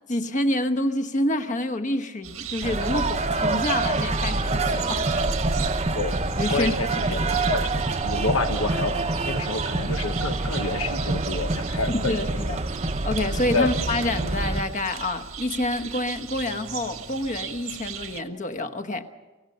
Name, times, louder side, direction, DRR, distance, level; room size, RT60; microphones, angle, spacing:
voice 1, 0.1-5.3 6.4-6.8 7.1-7.2 11.9-12.7 13.0-19.1, left 1 dB, 35° left, 1.1 m, -27 dB
sound 1, 2.2-18.2, right 8 dB, 80° right, 1.7 m, -37 dB
sound 2, 2.6-14.6, right 2 dB, 30° right, 0.9 m, -26 dB
voice 2, 6.5-7.1 7.5-7.7 8.0-12.2 13.5-13.7, left 3 dB, 85° left, 1.1 m, -28 dB
25.0 x 17.0 x 6.8 m
head